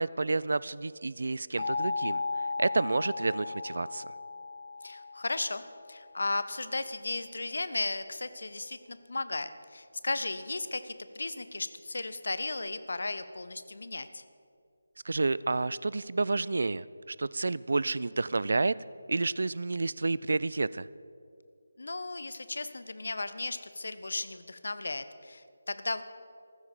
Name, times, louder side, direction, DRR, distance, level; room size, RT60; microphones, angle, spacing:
voice 1, 0.0-2.2 2.6-4.1 15.1-18.7 19.1-20.9, right 3 dB, 55° right, 20 dB, 0.3 m, -30 dB
sound 1, 1.6-6.3, left 4 dB, 35° left, 2.0 m, -36 dB
voice 2, 4.8-5.6 5.9-14.2 21.8-26.0, left 2 dB, 55° left, 12 dB, 0.7 m, -35 dB
14.5 x 12.5 x 5.3 m, 2.5 s
figure-of-eight pair, 155°, 0 cm